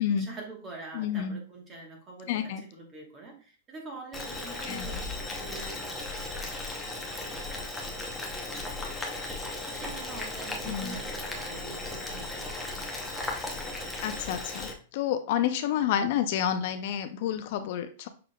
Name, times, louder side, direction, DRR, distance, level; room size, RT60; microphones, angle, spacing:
voice 1, 0.2-5.9 8.5-12.8, right 3 dB, 20° right, 1 dB, 1.1 m, -45 dB
voice 2, 0.9-1.4 2.3-2.6 4.7-4.9 10.7-11.0 14.0-18.1, left 9 dB, 50° left, 9 dB, 0.4 m, -29 dB
Boiling, 4.1-14.7, left 2 dB, 5° left, 0.6 m, -36 dB
5.7 x 3.5 x 2.2 m, 0.39 s
supercardioid pair, 160°, 0 cm